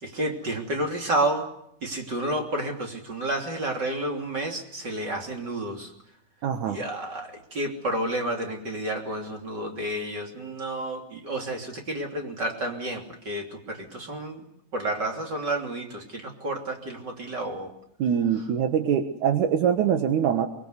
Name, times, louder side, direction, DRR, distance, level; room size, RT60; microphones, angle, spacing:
voice 1, 0.0-1.5 1.8-5.9 6.7-14.4 14.7-17.7, right 1 dB, 35° right, 2 dB, 3.6 m, -30 dB
voice 2, 6.4-6.8 18.0-20.5, right 8 dB, 75° right, 7 dB, 2.7 m, -23 dB
23.5 x 22.5 x 8.2 m, 0.74 s
omnidirectional pair, 3.6 m